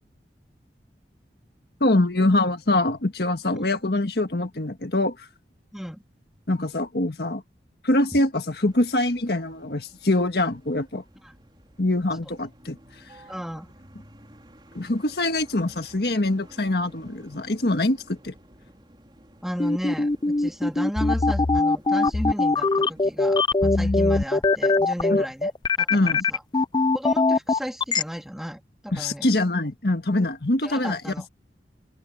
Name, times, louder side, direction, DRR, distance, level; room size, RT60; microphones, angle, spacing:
voice 1, 1.8-5.3 6.5-7.4 7.8-11.0 11.8-12.8 14.7-18.3 25.1-25.2 25.9-26.2 28.9-31.3, left 2 dB, 60° left, 1.6 m, -24 dB
voice 2, 5.7-6.0 11.2-11.3 13.3-13.7 19.4-25.5 25.8-26.4 26.9-29.3 30.6-31.3, equal, ahead, 3.1 m, -34 dB
sound 1, 8.6-23.2, right 1 dB, 25° right, 3.7 m, -53 dB
sound 2, 19.6-28.0, left 3 dB, 25° left, 0.4 m, -21 dB
open air
head